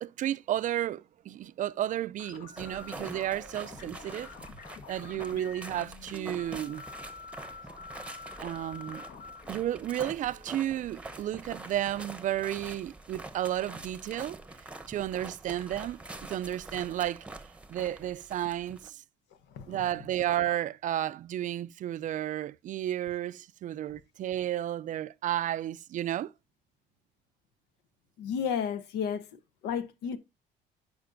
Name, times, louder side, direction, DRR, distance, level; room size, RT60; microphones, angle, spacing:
voice 1, 0.0-4.3 4.9-6.8 8.4-9.0 9.5-14.4 14.9-16.0 16.3-17.3 17.7-19.0 19.7-26.3, right 12 dB, 50° right, 0.4 m, -32 dB
sound 1, 2.2-11.1, left 4 dB, 60° left, 1.4 m, -48 dB
sound 2, 2.6-18.9, right 2 dB, 5° right, 0.9 m, -45 dB
voice 2, 28.2-29.2 29.6-30.2, left 7 dB, 90° left, 0.9 m, -32 dB
11.0 x 5.1 x 2.6 m
cardioid pair, 110°, 17 cm